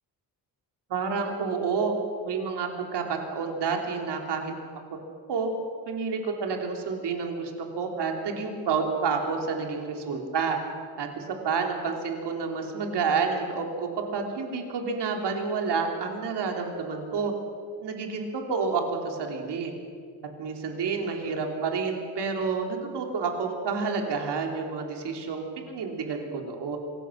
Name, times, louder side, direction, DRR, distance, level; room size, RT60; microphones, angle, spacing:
voice 1, 0.9-2.0 2.2-4.8 5.3-5.5 5.9-10.6 11.0-17.3 17.8-19.7 20.4-26.8, right 5 dB, 70° right, 2 dB, 3.4 m, -29 dB
25.5 x 18.0 x 6.5 m, 2.2 s
cardioid pair, 75°, 43 cm